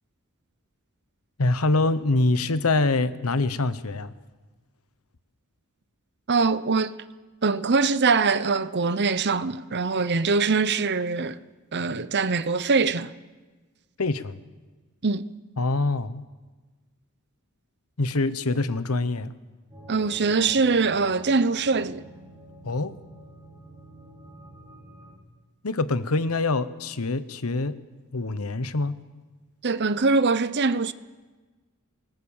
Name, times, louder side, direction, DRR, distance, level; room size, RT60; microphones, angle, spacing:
voice 1, 1.4-4.1 14.0-14.4 15.6-16.2 18.0-19.3 22.6-23.0 25.6-27.8 28.1-29.0, left 2 dB, 85° left, 1.1 m, -25 dB
voice 2, 6.3-6.9 7.4-11.4 11.7-13.1 15.0-15.3 19.9-22.1 29.6-30.9, right 4 dB, 50° right, 0.8 m, -23 dB
sound 1, 19.7-25.1, equal, 15° right, 7.7 m, -47 dB
25.5 x 19.5 x 7.3 m
head